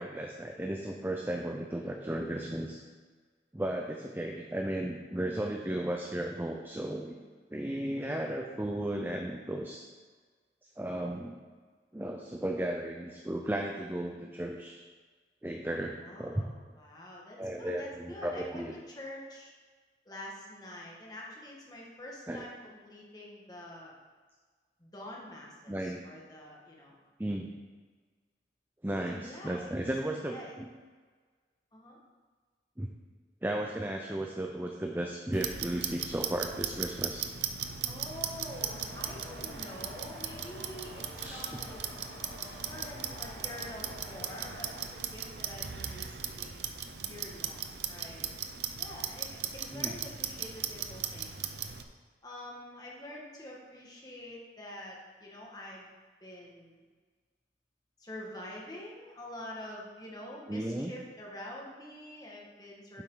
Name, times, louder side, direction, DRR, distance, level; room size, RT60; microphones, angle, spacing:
voice 1, 0.0-2.8 3.5-7.2 7.5-9.8 10.8-11.4 11.9-14.8 15.4-16.4 17.4-18.7 22.3-22.4 25.7-26.0 27.2-27.5 28.8-30.7 32.8-32.9 33.4-37.3 41.2-41.4 42.4-42.7 49.7-49.9 60.5-60.9, right 1 dB, 10° right, 1 dB, 0.5 m, -35 dB
voice 2, 16.0-19.5 20.1-23.9 24.8-27.0 29.1-30.6 31.7-32.0 37.9-42.0 42.6-46.7 47.0-48.3 48.8-51.5 52.2-55.9 56.2-56.8 58.0-63.0, left 1 dB, 20° left, -3 dB, 1.7 m, -46 dB
Clock, 35.3-51.8, right 8 dB, 70° right, 0.7 m, -38 dB
sound 1, 38.6-44.8, left 1 dB, 80° left, 2.3 m, -48 dB
9.4 x 7.5 x 3.9 m, 1.5 s
head